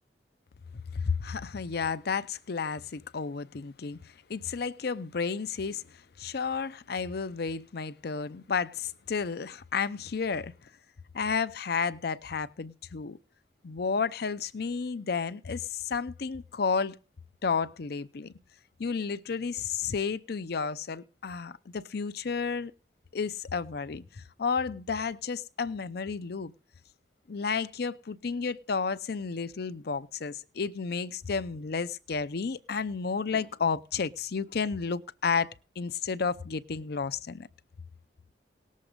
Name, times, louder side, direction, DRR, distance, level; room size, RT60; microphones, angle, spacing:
voice 1, 0.9-10.7 11.1-13.2 13.6-17.0 17.4-18.3 18.8-22.7 23.1-26.5 27.3-37.5, left 5 dB, 60° left, 0.6 m, -32 dB
18.5 x 7.4 x 5.1 m
head